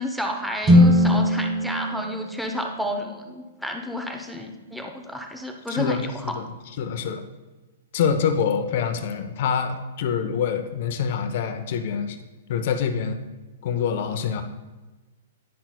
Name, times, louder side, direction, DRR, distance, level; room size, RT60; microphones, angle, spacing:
voice 1, 0.0-6.4, equal, ahead, 2 dB, 0.7 m, -31 dB
sound 1, 0.6-3.1, left 1 dB, 25° right, 1.6 m, -20 dB
voice 2, 5.7-6.5 6.8-7.2 7.9-12.2 12.5-13.2 13.6-14.4, left 7 dB, 55° left, 8 dB, 0.8 m, -25 dB
10.5 x 6.0 x 2.3 m, 1.2 s
hypercardioid pair, 125°, 0 cm